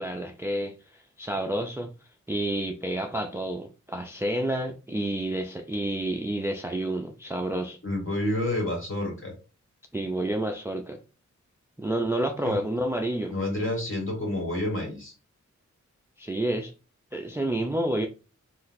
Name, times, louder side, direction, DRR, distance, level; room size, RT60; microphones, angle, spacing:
voice 1, 0.0-1.9 2.3-7.8 9.9-11.0 11.8-13.3 16.2-16.7 17.1-18.1, right 1 dB, 10° right, 0.3 m, -29 dB
voice 2, 7.8-9.3 12.4-12.6 13.3-15.1, left 1 dB, 45° left, 1.5 m, -29 dB
3.8 x 2.3 x 2.6 m
wide cardioid pair, 75°, 30 cm